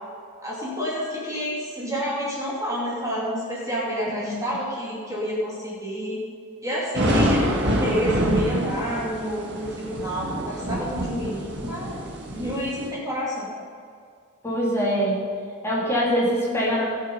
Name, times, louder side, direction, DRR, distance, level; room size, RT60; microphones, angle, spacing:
voice 1, 0.4-6.2 6.6-12.0 12.3-13.5, equal, 15° right, -6 dB, 2.6 m, -29 dB
voice 2, 4.1-4.4 14.4-15.2 15.6-16.9, equal, 10° left, -6 dB, 2.8 m, -23 dB
sound 1, 6.9-12.9, equal, 50° right, 1.7 m, -26 dB
18.0 x 6.8 x 5.4 m, 2.2 s
head